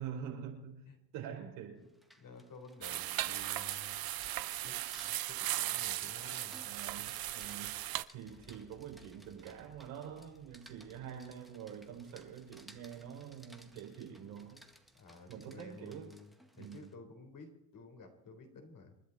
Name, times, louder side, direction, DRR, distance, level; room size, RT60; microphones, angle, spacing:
voice 1, 0.0-0.9 1.1-1.9 6.6-7.8 8.1-14.6 15.3-16.1 16.5-16.9, right 8 dB, 85° right, 2 dB, 4.3 m, -46 dB
Rain, 1.8-16.9, equal, ahead, 1.8 m, -61 dB
voice 2, 2.2-4.1 4.5-6.6 14.9-19.0, left 4 dB, 45° left, 5 dB, 4.0 m, -53 dB
sound 1, 2.8-8.0, right 14 dB, 55° right, 0.8 m, -37 dB
sound 2, 8.2-15.2, left 1 dB, 15° left, 3.5 m, -67 dB
28.5 x 10.5 x 4.2 m, 0.92 s
supercardioid pair, 95°, 44 cm